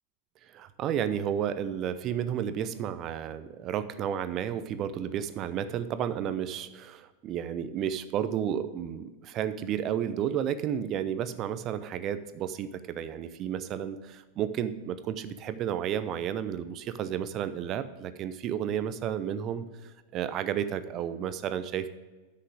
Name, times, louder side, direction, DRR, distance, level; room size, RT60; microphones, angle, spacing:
voice 1, 0.5-21.9, right 9 dB, 35° right, 12 dB, 0.7 m, -32 dB
10.0 x 7.7 x 4.9 m, 1.2 s
figure-of-eight pair, 90°, 0 cm